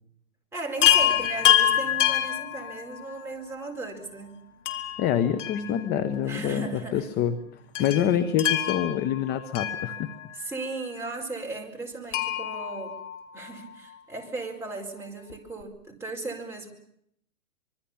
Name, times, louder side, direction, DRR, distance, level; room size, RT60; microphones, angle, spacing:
voice 1, 0.5-4.4 6.2-7.1 7.8-8.1 10.3-13.0 13.3-16.7, right 3 dB, 5° right, -1 dB, 4.4 m, -36 dB
Chime, 0.8-3.2 4.7-6.2 6.5-6.6 7.8-10.5 12.1-13.7 15.3-15.4 15.6-15.7, left 11 dB, 55° left, 3.4 m, -26 dB
voice 2, 5.0-7.4 7.8-10.1, left 9 dB, 20° left, 14 dB, 1.0 m, -26 dB
25.5 x 23.5 x 7.2 m, 0.73 s
hypercardioid pair, 135°, 44 cm